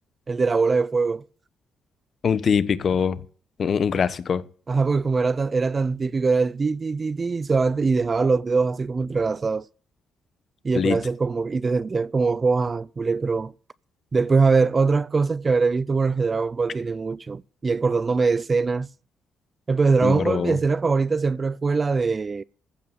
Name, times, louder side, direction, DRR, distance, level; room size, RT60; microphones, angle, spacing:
voice 1, 0.3-1.2 4.7-9.6 10.6-13.5 14.1-18.9 19.7-22.4, right 4 dB, 30° right, 0.5 m, -22 dB
voice 2, 2.2-3.2 3.6-4.4 10.7-11.0 20.0-20.6, left 6 dB, 50° left, 1.1 m, -23 dB
15.0 x 5.5 x 8.8 m
cardioid pair, 90°, 0 cm